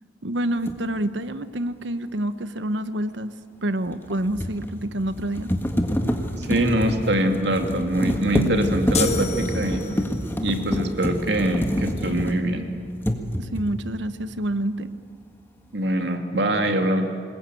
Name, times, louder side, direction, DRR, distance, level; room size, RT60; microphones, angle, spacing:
voice 1, 0.2-3.3 3.6-5.5 13.4-14.9, right 1 dB, 85° right, 12 dB, 1.2 m, -27 dB
sound 1, 0.6-0.8 3.9-12.6 13.0-13.8, equal, 10° left, 1.6 m, -27 dB
voice 2, 6.4-9.9 10.4-12.7 15.7-17.0, right 1 dB, 70° right, 4 dB, 2.7 m, -23 dB
sound 2, 8.9-10.3, left 4 dB, 35° left, 1.4 m, -29 dB
27.0 x 21.0 x 9.1 m, 2.1 s
head